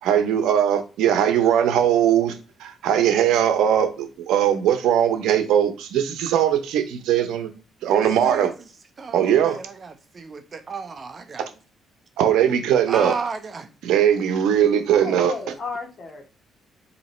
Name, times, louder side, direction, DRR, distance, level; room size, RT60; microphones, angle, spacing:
voice 1, 0.0-2.3 2.6-7.5 7.8-8.5 9.1-9.6 12.2-13.2 13.8-15.4, right 9 dB, 85° right, 0.8 m, -20 dB
voice 2, 7.8-8.5 9.0-11.5 12.9-13.7, right 4 dB, 40° right, 0.7 m, -33 dB
voice 3, 15.0-16.2, left 4 dB, 45° left, 1.4 m, -33 dB
4.1 x 2.9 x 4.2 m
cardioid pair, 90°, 0 cm